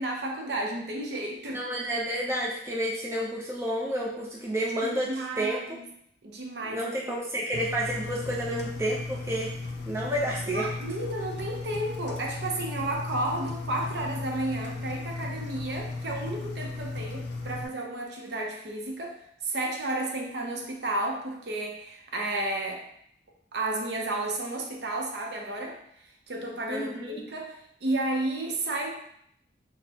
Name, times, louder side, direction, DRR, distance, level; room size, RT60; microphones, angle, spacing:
voice 1, 0.0-1.6 4.8-5.9 6.2-7.2 10.5-22.9 23.5-28.9, right 2 dB, 65° right, 1 dB, 0.6 m, -32 dB
voice 2, 1.5-5.8 6.7-9.5 9.8-10.7 26.7-27.2, right 1 dB, 15° right, -4 dB, 0.5 m, -30 dB
Engine, 7.5-17.6, left 3 dB, 65° left, 0.5 m, -36 dB
6.0 x 2.1 x 2.8 m, 0.71 s
head